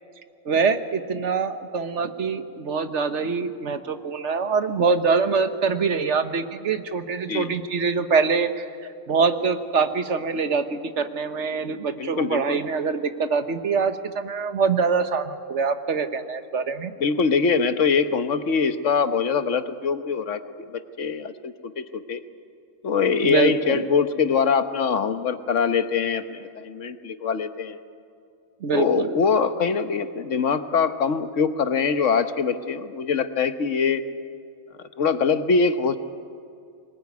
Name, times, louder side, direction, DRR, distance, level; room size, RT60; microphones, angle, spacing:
voice 1, 0.4-8.7 9.1-16.9 23.2-23.9 28.6-29.1, right 5 dB, 65° right, 9 dB, 1.5 m, -24 dB
voice 2, 12.0-12.6 17.0-20.4 21.0-22.2 22.8-27.8 28.7-34.0 35.0-36.0, left 5 dB, 70° left, 10 dB, 1.4 m, -23 dB
22.0 x 20.0 x 9.5 m, 2.4 s
omnidirectional pair, 1.3 m